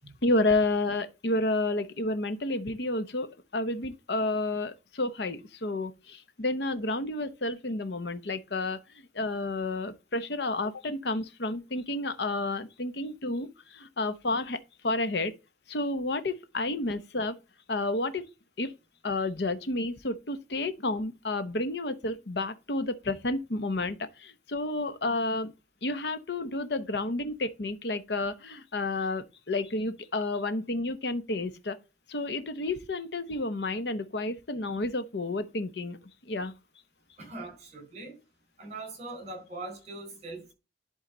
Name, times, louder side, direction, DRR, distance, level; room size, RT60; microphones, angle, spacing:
voice 1, 0.2-8.8 9.1-15.3 15.7-17.4 17.7-18.3 18.6-18.7 19.0-25.5 25.8-31.8 32.1-36.0 36.2-36.5, left 2 dB, 65° left, 0.9 m, -30 dB
voice 2, 37.2-38.2 38.6-40.5, right 2 dB, 40° right, 4.4 m, -41 dB
11.0 x 4.0 x 3.9 m
head